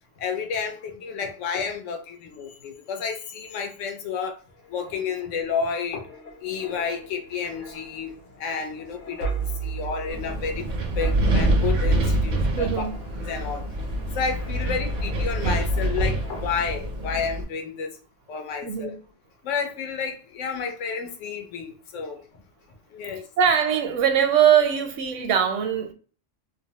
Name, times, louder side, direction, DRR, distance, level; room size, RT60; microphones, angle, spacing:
voice 1, 0.2-4.4 4.7-6.1 6.4-10.7 11.0-12.9 13.2-13.6 14.1-17.9 18.3-18.9 19.4-22.2 22.9-23.2, left 6 dB, 85° left, 1.0 m, -30 dB
sound 1, 4.5-16.8 17.2-17.4, right 5 dB, 50° left, 0.7 m, -37 dB
Wind, 10.1-17.4, right 1 dB, 60° right, 0.4 m, -25 dB
voice 2, 12.6-13.0 18.6-19.0 23.4-25.9, right 8 dB, 85° right, 0.9 m, -21 dB
2.5 x 2.0 x 2.7 m
omnidirectional pair, 1.3 m